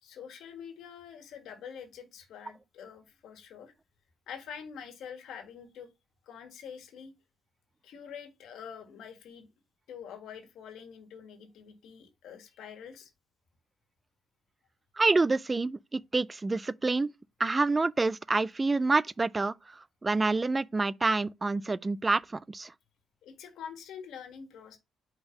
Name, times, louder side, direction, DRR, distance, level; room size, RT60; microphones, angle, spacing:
voice 1, 0.0-3.7 4.3-5.9 6.2-7.1 7.8-9.5 9.9-13.1 23.2-24.8, left 7 dB, 80° left, 1.6 m, -46 dB
voice 2, 15.0-17.1 17.4-22.7, right 3 dB, 25° right, 0.3 m, -27 dB
5.3 x 4.3 x 5.7 m
cardioid pair, 90°, 0 cm